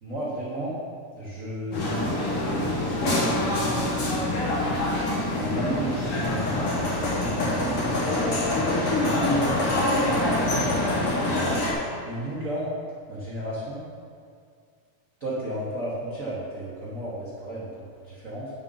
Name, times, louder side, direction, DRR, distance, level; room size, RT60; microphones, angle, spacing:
voice 1, 0.0-0.8 1.1-4.6 5.3-10.9 12.0-12.7 13.1-13.9 15.2-18.5, right 1 dB, 85° right, -8 dB, 0.7 m, -34 dB
sound 1, 1.7-11.7, left 1 dB, 55° left, 1.8 m, -25 dB
9.7 x 3.8 x 5.5 m, 2.2 s
omnidirectional pair, 3.5 m